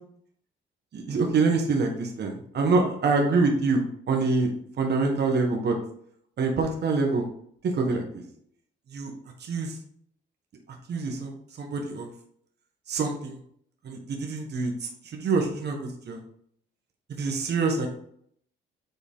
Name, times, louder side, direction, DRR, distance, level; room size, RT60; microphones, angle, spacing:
voice 1, 0.9-4.5 4.8-5.8 6.4-7.3 7.6-8.2 8.9-9.1 9.4-9.8 10.9-11.3 11.6-12.1 12.9-13.4 13.8-16.2 17.1-17.9, right 3 dB, 55° right, 2 dB, 1.5 m, -26 dB
8.0 x 4.1 x 3.7 m, 0.64 s
cardioid pair, 90°, 20 cm